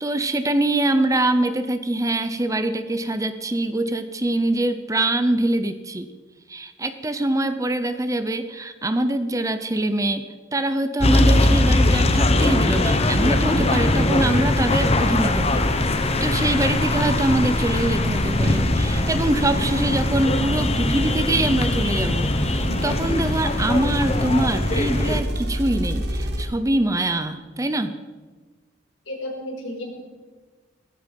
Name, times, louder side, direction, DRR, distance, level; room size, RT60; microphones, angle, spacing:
voice 1, 0.0-6.1 6.5-15.9 16.2-28.0, right 1 dB, 15° right, 10 dB, 0.7 m, -24 dB
sound 1, 11.0-25.2, left 2 dB, 30° left, 1.1 m, -21 dB
sound 2, 11.2-26.4, equal, 60° right, 2.2 m, -29 dB
voice 2, 29.1-29.9, left 1 dB, 80° left, -1 dB, 5.6 m, -32 dB
17.5 x 15.0 x 5.3 m, 1.3 s
head